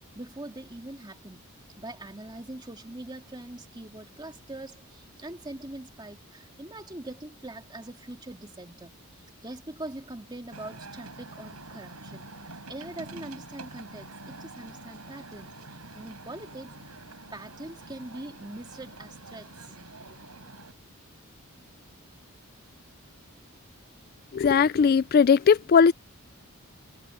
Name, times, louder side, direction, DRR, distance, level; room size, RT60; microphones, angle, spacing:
voice 1, 0.0-1.4 1.8-17.0 17.3-20.2, right 1 dB, 20° right, 2.4 m, -43 dB
sound 1, 10.5-20.7, right 2 dB, 80° right, 7.9 m, -46 dB
voice 2, 24.3-25.9, left 6 dB, 45° left, 0.3 m, -19 dB
head